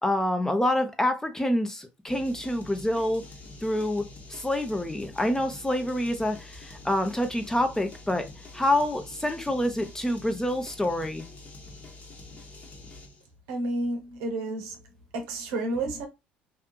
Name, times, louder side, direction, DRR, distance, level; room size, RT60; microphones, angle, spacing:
voice 1, 0.0-3.2 3.6-4.0 4.3-8.3 8.5-11.2, left 1 dB, 10° left, 0.6 m, -27 dB
sound 1, 2.1-13.2, left 2 dB, 35° left, 1.0 m, -46 dB
voice 2, 13.5-14.8 15.1-16.1, right 2 dB, 80° right, 0.8 m, -30 dB
2.6 x 2.6 x 2.2 m
hypercardioid pair, 65°, 5 cm